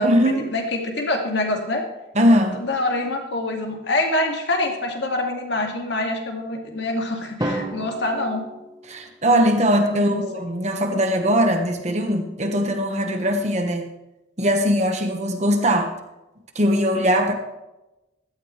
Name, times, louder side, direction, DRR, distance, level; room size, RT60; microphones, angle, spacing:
voice 1, 0.0-0.5 2.1-2.6 8.9-13.9 14.4-15.9 16.5-17.3, equal, 35° right, 4 dB, 1.5 m, -20 dB
voice 2, 0.5-1.8 2.5-8.5 9.9-10.2, left 2 dB, 65° left, 2 dB, 2.3 m, -25 dB
Drum, 7.4-9.4, right 1 dB, 20° right, 1.2 m, -31 dB
15.5 x 13.0 x 3.4 m, 0.97 s
head